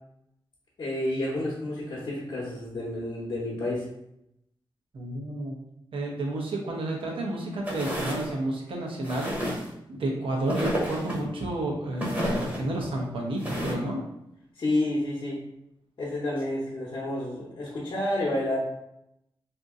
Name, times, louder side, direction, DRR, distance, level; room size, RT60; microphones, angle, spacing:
voice 1, 0.8-3.9 14.5-15.4 16.0-18.6, left 1 dB, 50° left, -6 dB, 0.8 m, -30 dB
voice 2, 4.9-5.6 5.9-9.3 9.9-14.0, right 1 dB, 75° right, -1 dB, 0.9 m, -31 dB
sound 1, 7.7-8.3 9.0-9.7 10.5-11.2 12.0-12.6 13.4-13.7, equal, 20° right, 0.9 m, -30 dB
2.7 x 2.6 x 3.6 m, 0.81 s
wide cardioid pair, 130°, 9 cm